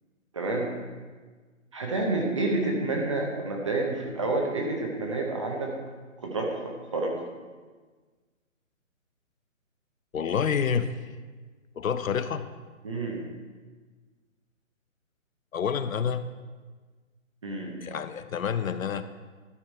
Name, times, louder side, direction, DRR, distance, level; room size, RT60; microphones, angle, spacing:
voice 1, 0.3-0.7 1.7-5.7 6.2-6.6 6.9-7.1 12.8-13.2 17.4-17.7, right 2 dB, 25° right, 0 dB, 0.8 m, -29 dB
voice 2, 10.1-10.9 11.8-12.5 15.5-16.2 17.8-19.0, left 7 dB, 80° left, 12 dB, 0.7 m, -28 dB
12.5 x 5.9 x 4.5 m, 1.4 s
hypercardioid pair, 165°, 40 cm